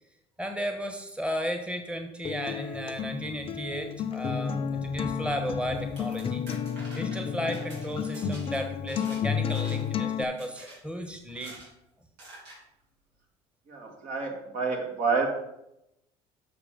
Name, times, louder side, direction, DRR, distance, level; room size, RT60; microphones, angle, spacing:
voice 1, 0.4-6.4 7.0-11.6, equal, 5° right, 5 dB, 1.2 m, -34 dB
Acoustic guitar, 2.2-10.2, left 7 dB, 35° left, 0.7 m, -32 dB
sound 1, 5.7-9.2 9.5-10.0 10.4-10.8 11.3-11.7 12.2-12.6, right 2 dB, 85° right, 3.7 m, -47 dB
voice 2, 13.7-15.3, right 4 dB, 60° right, 1 dB, 2.3 m, -29 dB
6.8 x 6.3 x 5.1 m, 0.84 s
supercardioid pair, 85°, 15 cm